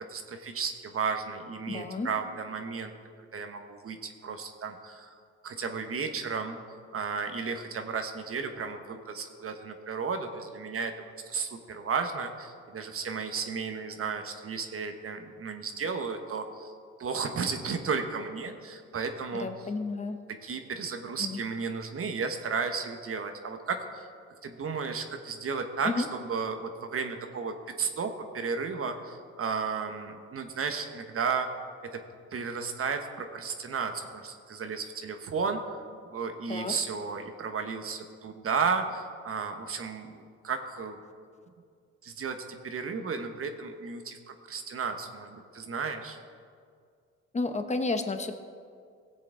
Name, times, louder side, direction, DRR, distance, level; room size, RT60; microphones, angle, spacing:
voice 1, 0.1-2.9 3.3-5.2 5.4-6.6 6.9-10.9 11.3-16.7 17.0-19.5 20.3-24.1 24.4-31.5 31.9-32.0 32.3-35.8 36.1-41.0 42.0-46.2, right 5 dB, 45° right, 6 dB, 1.0 m, -33 dB
voice 2, 1.7-2.1 19.3-20.2 21.2-21.4 25.8-26.1 36.5-36.7 47.3-48.3, left 3 dB, 25° left, 8 dB, 0.9 m, -31 dB
17.5 x 7.6 x 3.7 m, 2.2 s
cardioid pair, 90°, 30 cm